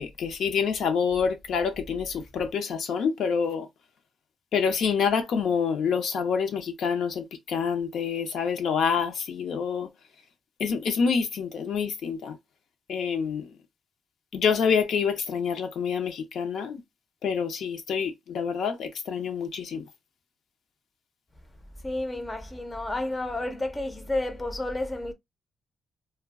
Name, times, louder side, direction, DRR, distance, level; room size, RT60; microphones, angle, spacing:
voice 1, 0.0-3.7 4.5-9.9 10.6-12.4 12.9-13.5 14.3-16.8 17.2-19.9, left 6 dB, 75° left, 0.6 m, -27 dB
voice 2, 21.8-25.1, left 2 dB, 15° left, 0.4 m, -31 dB
2.3 x 2.1 x 3.4 m
wide cardioid pair, 145°, 0 cm